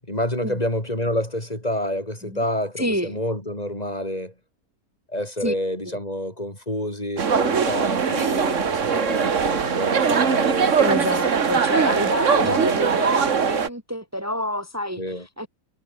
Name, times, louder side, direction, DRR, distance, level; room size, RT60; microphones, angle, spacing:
voice 1, 0.1-4.3 5.1-10.8 11.9-12.0 12.4-12.8 15.0-15.3, left 1 dB, 25° left, 5.6 m, -28 dB
voice 2, 2.8-3.1 5.4-5.5 5.9-6.0 10.8-15.5, equal, 10° right, 3.6 m, -27 dB
sound 1, 7.2-13.7, right 6 dB, 60° right, 1.8 m, -21 dB
omnidirectional pair, 1.5 m